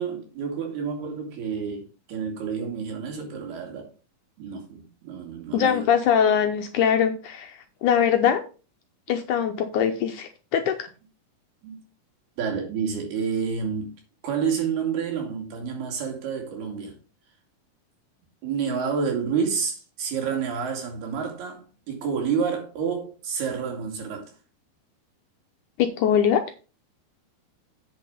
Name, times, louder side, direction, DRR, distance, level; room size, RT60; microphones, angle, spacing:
voice 1, 0.0-3.9 4.4-5.8 11.6-11.8 12.4-13.9 14.2-17.0 18.4-24.3, right 6 dB, 90° right, 4.5 m, -29 dB
voice 2, 5.5-8.4 9.1-10.9 25.8-26.4, left 8 dB, 75° left, 1.9 m, -22 dB
8.4 x 6.4 x 5.5 m
omnidirectional pair, 4.4 m